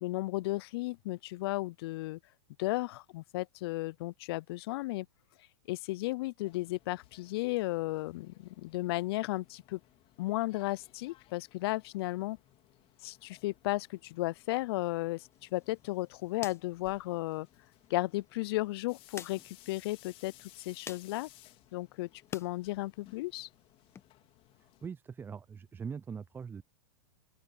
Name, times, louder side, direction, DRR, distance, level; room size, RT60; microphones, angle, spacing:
voice 1, 0.0-2.2 2.6-5.1 5.7-9.8 10.2-12.4 13.0-17.5 17.9-21.3 21.7-23.5, left 19 dB, 55° left, 0.5 m, -34 dB
sound 1, 6.4-24.9, left 16 dB, 40° left, 4.1 m, -61 dB
sound 2, 15.3-22.5 22.9-24.0, left 6 dB, 15° left, 1.3 m, -52 dB
voice 2, 24.6-26.6, right 6 dB, 15° right, 0.5 m, -42 dB
open air
hypercardioid pair, 115°, 15 cm